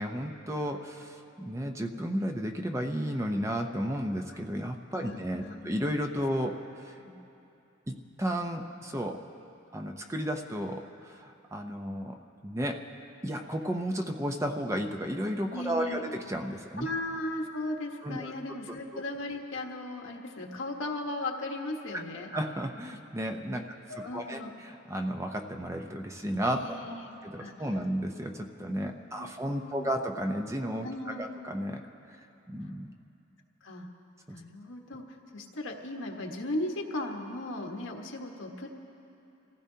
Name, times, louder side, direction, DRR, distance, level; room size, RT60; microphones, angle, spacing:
voice 1, 0.0-7.0 7.9-9.2 9.7-12.2 12.4-12.8 13.2-16.9 18.0-18.3 18.9-19.0 22.3-23.8 24.1-26.8 27.2-31.9 32.5-32.9 34.3-34.4, equal, 15° right, 4 dB, 0.6 m, -33 dB
voice 2, 4.9-5.7 7.0-7.1 15.5-16.0 16.8-22.3 23.5-23.6 23.9-24.5 26.5-27.5 29.2-29.9 30.8-31.2 33.6-33.9 34.3-38.7, left 1 dB, 75° left, 1 dB, 1.4 m, -37 dB
27.5 x 16.0 x 2.8 m, 2.8 s
head